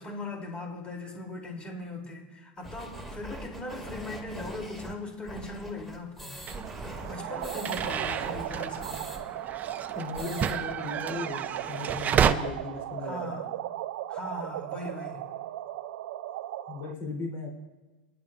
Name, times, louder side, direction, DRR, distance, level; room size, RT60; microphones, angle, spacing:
voice 1, 0.0-6.3 7.0-9.2 13.0-13.5 14.1-15.2, left 2 dB, 20° left, 1 dB, 3.3 m, -39 dB
sound 1, 2.6-9.2 9.5-9.6 9.9-10.5, right 1 dB, 5° left, 2.6 m, -42 dB
sound 2, 6.5-12.3, right 8 dB, 30° right, 0.7 m, -31 dB
sound 3, 6.9-16.9, right 13 dB, 70° right, 0.5 m, -37 dB
voice 2, 9.9-13.5 16.7-17.5, left 3 dB, 45° left, -1 dB, 3.8 m, -37 dB
28.0 x 11.0 x 2.6 m, 1.2 s
hypercardioid pair, 105°, 5 cm